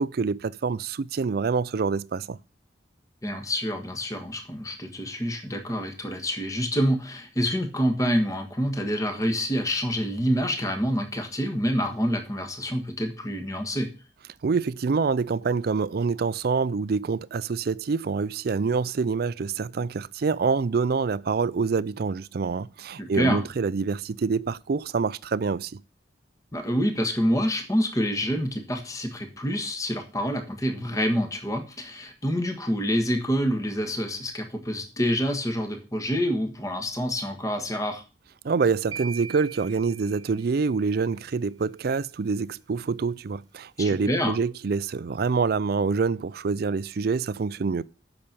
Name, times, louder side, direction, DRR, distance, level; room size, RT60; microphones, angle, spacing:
voice 1, 0.0-2.4 14.4-25.8 38.4-47.8, right 4 dB, 55° right, 0.4 m, -26 dB
voice 2, 3.2-13.9 23.0-23.4 26.5-38.0 43.8-44.4, equal, 20° left, 1.4 m, -27 dB
sound 1, 38.9-41.0, right 6 dB, 20° right, 1.3 m, -41 dB
8.7 x 6.0 x 6.7 m
head